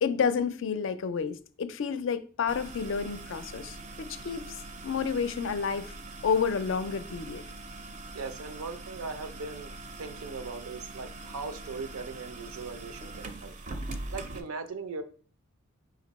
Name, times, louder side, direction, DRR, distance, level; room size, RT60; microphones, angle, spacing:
voice 1, 0.0-4.6 4.8-5.9 6.2-7.4, left 6 dB, 60° left, 0.4 m, -30 dB
sound 1, 2.5-14.4, right 2 dB, 35° right, 0.5 m, -42 dB
voice 2, 8.1-9.7 10.0-13.5 14.1-15.0, right 4 dB, 85° right, 0.6 m, -39 dB
5.1 x 2.5 x 4.0 m
head